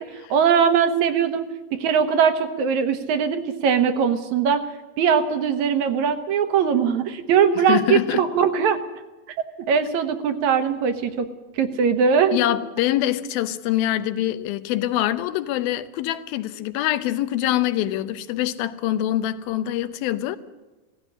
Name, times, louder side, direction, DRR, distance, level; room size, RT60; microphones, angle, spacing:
voice 1, 0.0-1.5 1.8-4.6 5.0-8.8 9.7-11.3 11.6-12.5, right 7 dB, 65° right, 2.1 m, -20 dB
voice 2, 7.6-8.2 12.3-20.4, left 13 dB, 90° left, 2.7 m, -24 dB
17.0 x 15.5 x 9.8 m
omnidirectional pair, 4.1 m